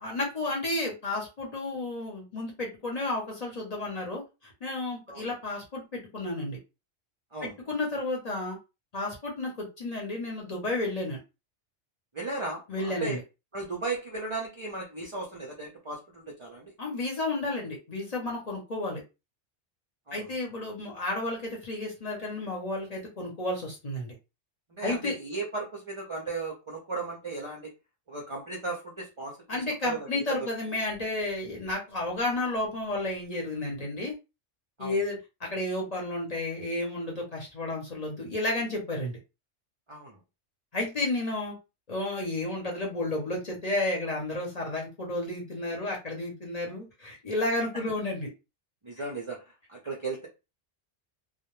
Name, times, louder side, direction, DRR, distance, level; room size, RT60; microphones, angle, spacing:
voice 1, 0.0-6.6 7.4-8.6 8.9-11.2 12.7-13.2 16.8-19.0 20.1-24.1 24.8-25.1 29.5-34.1 34.8-39.2 40.7-41.5 41.9-48.3, left 2 dB, 40° left, -2 dB, 0.7 m, -32 dB
voice 2, 12.1-13.2 13.5-16.7 20.1-20.3 24.7-27.7 28.1-30.4 34.8-35.0 39.9-40.2 48.8-49.4 49.7-50.3, right 3 dB, 45° right, -1 dB, 0.4 m, -36 dB
2.1 x 2.0 x 3.0 m, 0.28 s
omnidirectional pair, 1.2 m